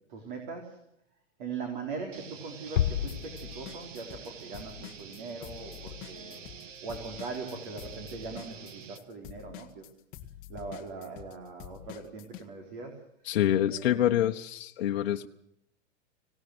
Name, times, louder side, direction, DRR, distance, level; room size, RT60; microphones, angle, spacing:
voice 1, 0.1-0.8 1.4-6.4 6.8-9.9 10.5-13.0 13.7-14.1, right 4 dB, 40° right, 3 dB, 3.9 m, -41 dB
sound 1, 2.1-9.0, right 7 dB, 85° right, 2.6 m, -47 dB
Bass drum, 2.8-4.2, left 10 dB, 80° left, 1.3 m, -31 dB
sound 2, 3.1-4.3 4.5-12.5, left 13 dB, 25° left, 1.5 m, -47 dB
voice 2, 13.2-15.3, left 11 dB, 55° left, 3 dB, 1.2 m, -26 dB
26.0 x 18.5 x 7.9 m, 0.77 s
supercardioid pair, 175°, 37 cm